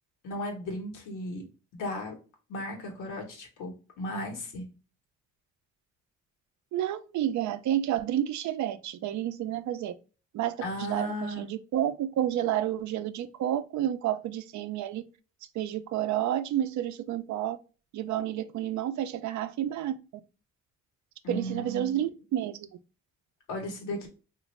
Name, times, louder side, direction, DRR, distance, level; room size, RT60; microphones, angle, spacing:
voice 1, 0.2-1.4 1.7-2.1 2.5-4.6 10.6-11.4 21.2-22.0 23.5-24.1, left 1 dB, 90° left, 1.1 m, -35 dB
voice 2, 6.7-9.9 10.3-15.0 15.5-17.6 17.9-20.0 21.3-22.7, right 11 dB, 70° right, 0.4 m, -30 dB
3.0 x 2.5 x 3.0 m
cardioid pair, 90°, 30 cm